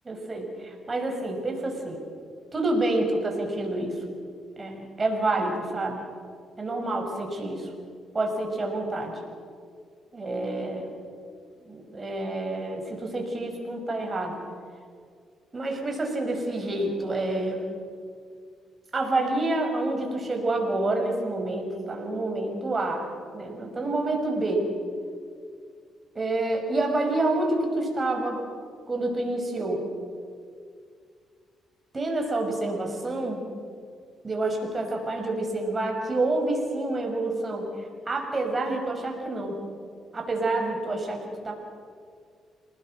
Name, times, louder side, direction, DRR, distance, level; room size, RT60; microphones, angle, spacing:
voice 1, 0.0-2.0 2.5-4.0 4.6-6.1 6.6-7.7 8.1-9.2 10.1-10.9 11.6-14.4 15.5-17.6 18.9-23.1 23.3-24.7 26.1-28.4 28.9-29.9 31.9-33.5 34.2-39.6 40.1-41.5, right 2 dB, 30° right, 2 dB, 5.7 m, -28 dB
27.5 x 19.5 x 6.4 m, 2.2 s
cardioid pair, 90°, 0 cm